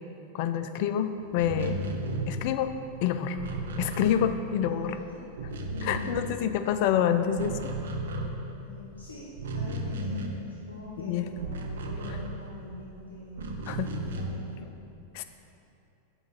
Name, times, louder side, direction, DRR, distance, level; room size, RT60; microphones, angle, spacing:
voice 1, 0.3-1.8 2.3-2.7 3.0-3.4 3.8-5.0 5.8-7.6 11.0-11.3 13.7-13.9 15.1-15.2, left 9 dB, 45° left, 10 dB, 0.3 m, -27 dB
sound 1, 1.3-4.9 5.2-6.9 7.2-12.8 13.3-14.6, right 1 dB, 65° right, 0.6 m, -35 dB
voice 2, 4.6-5.2 8.6-10.1 10.5-13.5 13.9-14.7, left 2 dB, 80° left, -5 dB, 0.7 m, -45 dB
6.0 x 3.8 x 5.3 m, 2.7 s
figure-of-eight pair, 90°, 0 cm